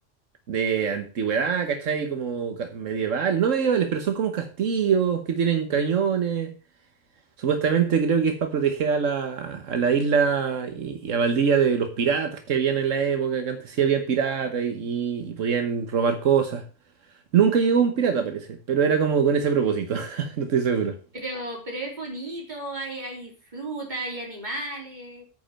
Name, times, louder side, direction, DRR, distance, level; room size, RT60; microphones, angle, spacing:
voice 1, 0.5-6.5 7.4-16.6 17.3-21.0, right 6 dB, 80° right, 6 dB, 1.4 m, -23 dB
voice 2, 21.1-25.2, right 2 dB, 35° right, -1 dB, 3.5 m, -34 dB
9.3 x 5.2 x 7.4 m, 0.35 s
omnidirectional pair, 1.3 m